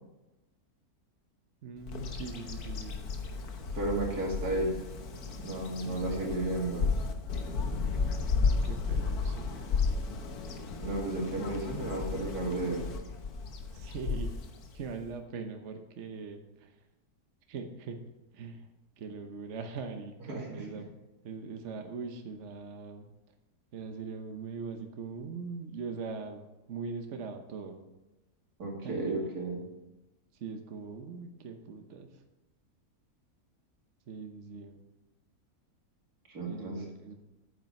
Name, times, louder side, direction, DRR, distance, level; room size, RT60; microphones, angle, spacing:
voice 1, 1.6-3.0 5.7-6.5 8.4-9.7 13.7-14.4 14.7-16.7 17.5-18.0 18.3-18.7 19.0-20.9 21.2-23.1 23.7-27.9 28.8-29.2 30.4-32.2 34.1-34.8 36.4-37.2, right 5 dB, 55° right, 5 dB, 1.2 m, -41 dB
Bird vocalization bird call bird song, 1.9-15.1, left 4 dB, 85° left, 1.6 m, -33 dB
voice 2, 3.7-4.7 5.4-6.9 10.8-12.8 20.3-20.8 28.6-29.6 36.3-36.8, right 2 dB, 90° right, -1 dB, 2.9 m, -33 dB
9.0 x 8.9 x 5.3 m, 1.0 s
omnidirectional pair, 1.6 m